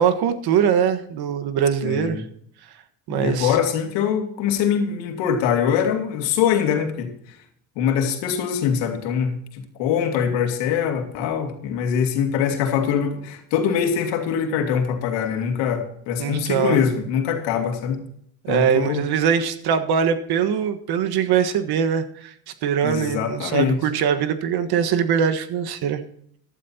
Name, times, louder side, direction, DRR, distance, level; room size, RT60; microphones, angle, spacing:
voice 1, 0.0-2.2 3.1-3.5 16.2-16.8 18.4-22.3 22.6-26.0, right 8 dB, 60° right, 9 dB, 1.5 m, -22 dB
voice 2, 1.8-2.2 3.1-7.1 7.8-18.0 18.5-19.0 22.8-23.8, left 8 dB, 80° left, 4 dB, 2.6 m, -23 dB
15.0 x 12.0 x 2.9 m, 0.67 s
cardioid pair, 105°, 42 cm